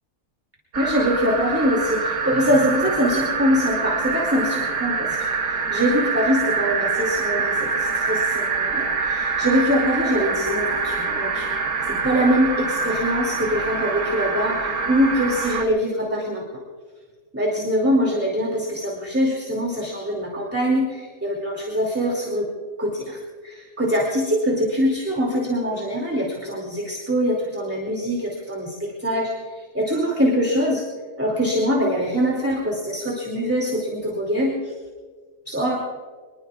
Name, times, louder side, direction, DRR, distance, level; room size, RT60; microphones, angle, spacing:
sound 1, 0.7-15.6, right 4 dB, 75° right, 1.7 m, -25 dB
voice 1, 0.8-11.5 11.9-16.5 17.3-22.5 22.8-29.3 29.7-30.8 31.2-34.7 35.5-35.8, equal, 10° right, -2 dB, 2.4 m, -23 dB
24.0 x 21.5 x 2.4 m, 1.5 s
omnidirectional pair, 1.6 m